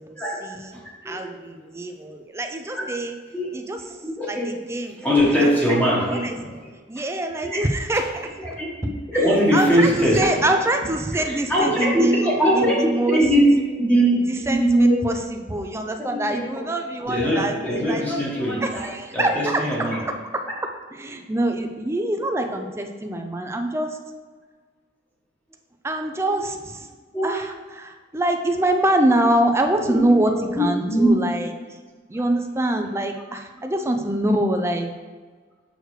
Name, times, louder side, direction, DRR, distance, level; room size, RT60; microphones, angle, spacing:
voice 1, 0.0-0.8 1.0-3.2 3.5-5.0 5.4-5.7 6.1-6.4 6.9-8.6 9.1-12.3 12.5-13.2 14.1-17.6 17.8-18.1 18.6-19.6 20.0-20.1 20.9-24.0 25.8-26.9 27.2-31.8 32.1-34.9, right 1 dB, 15° right, 5 dB, 0.5 m, -25 dB
voice 2, 0.7-1.2 2.7-2.9 3.3-3.4 4.0-4.4 5.0-6.5 7.5-7.6 8.6-8.7 9.1-10.3 11.5-12.8 13.1-13.4 13.8-14.2 14.5-15.0 16.0-16.4 17.0-20.0 27.1-27.3 29.8-30.0 30.2-30.3 30.6-31.1, equal, 10° left, -6 dB, 1.3 m, -21 dB
6.4 x 6.4 x 3.2 m, 1.4 s
head